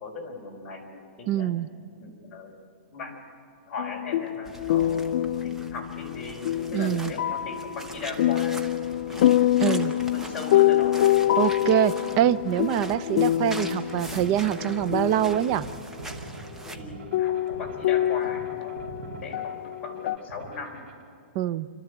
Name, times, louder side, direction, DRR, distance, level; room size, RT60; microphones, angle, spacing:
voice 1, 0.0-1.5 2.0-2.5 2.9-3.1 3.7-5.1 5.4-8.6 9.1-11.0 16.7-19.5 19.8-20.8, left 3 dB, 15° left, -4 dB, 4.4 m, -38 dB
voice 2, 1.3-1.7 6.7-7.1 9.6-9.9 11.4-15.7 21.3-21.7, right 12 dB, 30° right, 15 dB, 0.5 m, -24 dB
sound 1, 3.8-15.8 16.6-16.7 17.1-20.2, left 13 dB, 45° left, 0.4 m, -26 dB
sound 2, 4.4-16.8, right 2 dB, 5° right, 0.8 m, -43 dB
sound 3, 12.1-21.0, right 3 dB, 70° right, 3.4 m, -43 dB
29.0 x 13.0 x 8.0 m, 2.3 s
hypercardioid pair, 170°, 7 cm